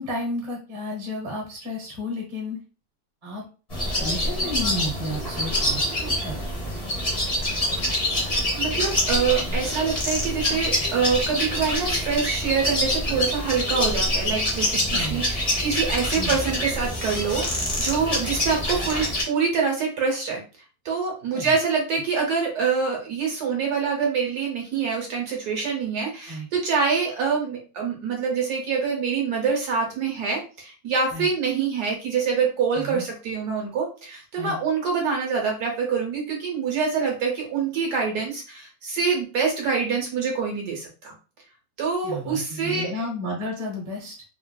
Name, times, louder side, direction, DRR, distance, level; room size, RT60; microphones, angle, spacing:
voice 1, 0.0-2.6 3.2-3.4 3.8-6.8 14.9-15.2 16.1-16.4 21.3-21.5 26.3-26.5 31.1-31.3 32.8-33.0 34.4-34.5 42.0-44.1, left 1 dB, 40° right, -2 dB, 1.1 m, -32 dB
sound 1, 3.7-19.2, left 1 dB, 75° left, 0.3 m, -26 dB
voice 2, 8.5-20.4 20.8-41.1 41.8-42.9, right 5 dB, 65° right, 0 dB, 1.2 m, -25 dB
3.4 x 2.4 x 2.2 m, 0.35 s
omnidirectional pair, 2.0 m